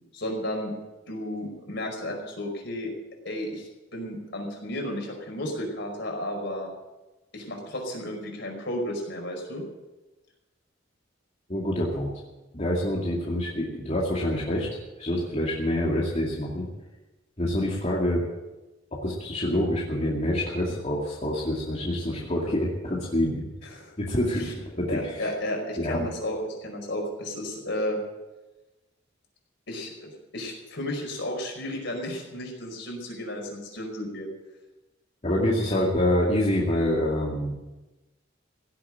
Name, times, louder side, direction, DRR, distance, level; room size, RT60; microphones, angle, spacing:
voice 1, 0.1-0.7 1.1-2.9 3.2-6.7 7.3-9.6 23.7-23.9 24.4-24.5 24.9-28.0 29.7-34.3 35.7-35.8, left 1 dB, 65° left, 1 dB, 5.1 m, -33 dB
voice 2, 11.5-12.1 12.5-16.7 17.4-18.2 19.0-23.5 24.0-25.3 25.8-26.1 35.2-37.6, left 1 dB, 35° left, -4 dB, 2.4 m, -26 dB
17.0 x 8.5 x 8.9 m, 1.1 s
head